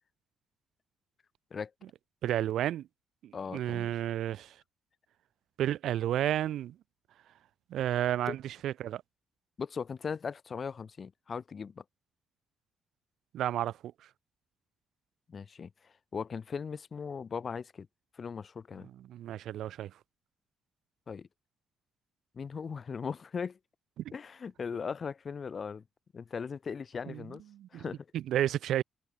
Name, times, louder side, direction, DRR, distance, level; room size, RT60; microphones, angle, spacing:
voice 1, 2.2-2.9 3.2-4.5 5.6-6.7 7.7-9.0 13.3-13.7 19.1-19.9 27.1-27.2 27.6-27.8 28.1-28.8, right 12 dB, 75° right, 1.0 m, -31 dB
voice 2, 3.3-3.9 8.3-8.4 9.6-11.8 15.3-17.9 18.1-18.9 21.1-21.3 22.3-23.6 24.1-25.8 26.1-27.4 27.7-28.1, left 6 dB, 40° left, 1.5 m, -38 dB
cardioid pair, 90°, 0 cm